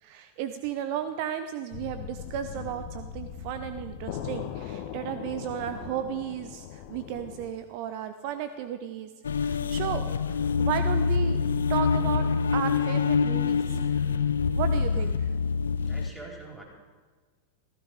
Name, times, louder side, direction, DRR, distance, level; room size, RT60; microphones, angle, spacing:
voice 1, 0.0-9.1 9.4-11.4 11.7-14.2 14.6-15.1, right 9 dB, 45° right, 10 dB, 0.8 m, -34 dB
sound 1, 1.7-7.5, left 9 dB, 45° left, 1.2 m, -39 dB
sound 2, 9.2-16.1, left 5 dB, 70° left, 0.6 m, -25 dB
voice 2, 14.8-15.1 15.8-16.6, right 2 dB, ahead, -2 dB, 4.6 m, -44 dB
15.5 x 15.0 x 5.1 m, 1.4 s
figure-of-eight pair, 90°, 0 cm